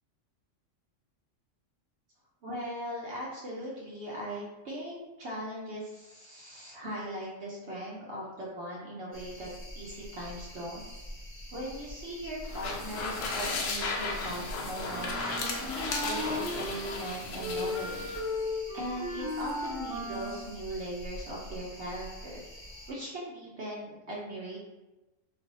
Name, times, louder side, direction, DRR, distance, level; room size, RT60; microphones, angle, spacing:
voice 1, 2.4-9.5 9.7-10.9 11.5-17.9 18.7-22.4 22.9-24.6, equal, 65° right, -5 dB, 0.9 m, -39 dB
sound 1, 9.1-22.9, equal, 35° left, 0.3 m, -46 dB
sound 2, 12.4-18.2, left 3 dB, 90° left, 1.0 m, -35 dB
Wind instrument woodwind instrument, 14.9-17.1 17.4-20.5, left 1 dB, 85° right, 1.5 m, -36 dB
3.3 x 2.4 x 2.6 m, 1.1 s
omnidirectional pair, 1.3 m